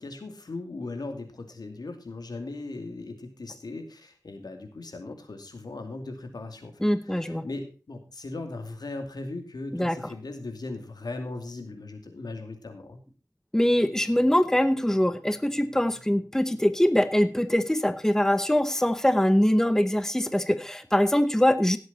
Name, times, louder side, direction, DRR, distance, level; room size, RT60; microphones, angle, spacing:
voice 1, 0.0-13.0, left 2 dB, 80° left, 6 dB, 2.5 m, -38 dB
voice 2, 6.8-7.4 9.7-10.0 13.5-21.8, left 1 dB, 5° left, 12 dB, 0.9 m, -23 dB
17.5 x 7.9 x 4.1 m, 0.33 s
wide cardioid pair, 80°, 7 cm